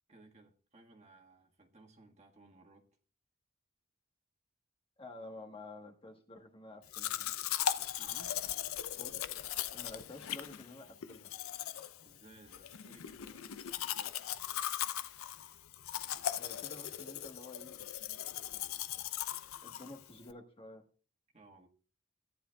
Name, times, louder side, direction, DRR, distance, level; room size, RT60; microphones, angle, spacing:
voice 1, 0.1-2.9 8.0-8.4 11.6-11.7 12.0-13.6 13.9-14.4 21.3-21.7, right 2 dB, 30° right, 1.5 m, -60 dB
voice 2, 5.0-7.4 9.0-9.3 9.7-11.3 16.3-18.2 18.9-19.0 19.6-20.8, left 2 dB, 25° left, 1.2 m, -51 dB
Domestic sounds home sounds, 6.9-20.3, left 10 dB, 85° left, 0.5 m, -39 dB
17.0 x 10.0 x 2.3 m
head